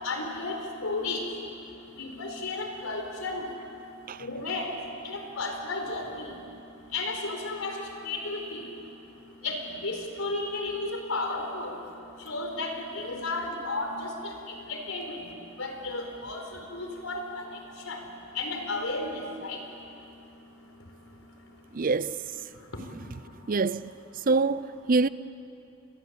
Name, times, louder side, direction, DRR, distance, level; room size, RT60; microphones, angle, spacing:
voice 1, 0.0-1.2 2.0-3.5 4.2-4.7 5.0-6.3 6.9-8.6 9.4-11.7 12.2-15.3 15.6-17.5 17.8-18.0 18.3-19.6, left 2 dB, 80° left, 4.5 m, -33 dB
voice 2, 21.7-22.2 23.5-23.9 24.3-25.1, right 3 dB, 40° right, 0.5 m, -25 dB
29.5 x 22.0 x 8.3 m
head